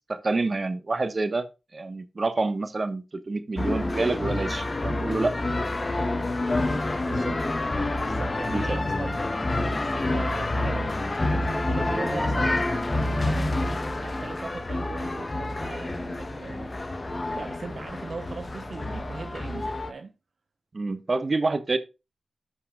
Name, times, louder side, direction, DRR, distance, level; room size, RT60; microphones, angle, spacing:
voice 1, 0.1-1.5 1.7-5.3 8.5-8.8 11.8-12.3 20.7-21.8, right 3 dB, 45° right, 1.2 m, -28 dB
sound 1, 3.6-19.9, left 2 dB, 35° left, 1.1 m, -28 dB
voice 2, 6.9-7.6 8.0-13.5 13.9-16.7 17.3-20.1, right 4 dB, 65° right, 0.9 m, -40 dB
15.0 x 5.6 x 2.4 m
cardioid pair, 50°, 0 cm